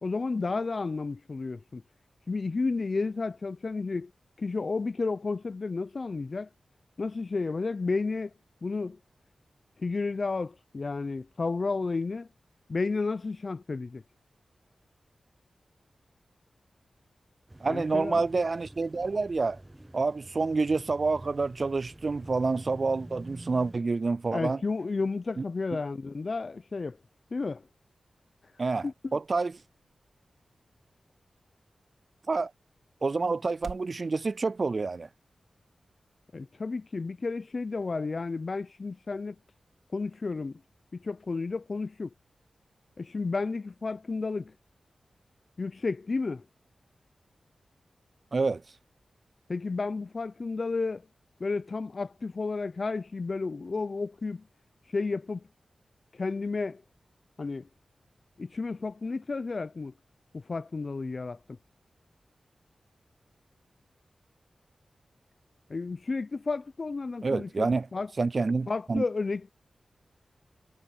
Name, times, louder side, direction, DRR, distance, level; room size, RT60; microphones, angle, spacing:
voice 1, 0.0-1.8 2.3-4.1 4.4-6.5 7.0-8.3 8.6-9.0 9.8-12.3 12.7-14.0 17.6-18.2 24.3-27.0 27.3-27.6 28.8-29.1 36.3-39.4 39.9-40.6 40.9-42.1 43.0-44.5 45.6-46.4 49.5-51.0 51.4-54.4 54.9-55.4 56.1-56.8 57.4-57.7 58.4-59.9 60.3-61.4 65.7-68.1 68.7-69.5, left 3 dB, 55° left, 0.7 m, -32 dB
sound 1, 17.5-23.8, right 1 dB, 20° right, 0.7 m, -48 dB
voice 2, 17.6-19.6 19.9-24.6 25.4-25.5 28.6-28.9 29.1-29.5 32.3-32.5 33.0-35.1 48.3-48.6 67.2-67.9 68.2-69.0, right 3 dB, 55° right, 0.3 m, -28 dB
sound 2, 27.7-34.0, right 6 dB, 90° right, 2.8 m, -53 dB
cardioid pair, 45°, 0 cm